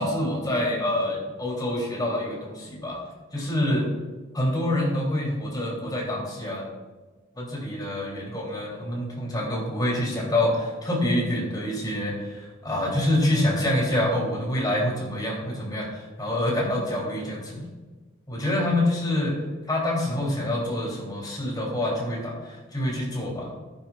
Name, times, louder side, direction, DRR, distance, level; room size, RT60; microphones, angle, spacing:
voice 1, 0.0-3.0 3.3-3.9 4.3-6.7 7.4-17.6 18.3-19.3 19.7-23.5, left 1 dB, 20° left, -3 dB, 3.3 m, -26 dB
16.0 x 9.9 x 2.5 m, 1.3 s
head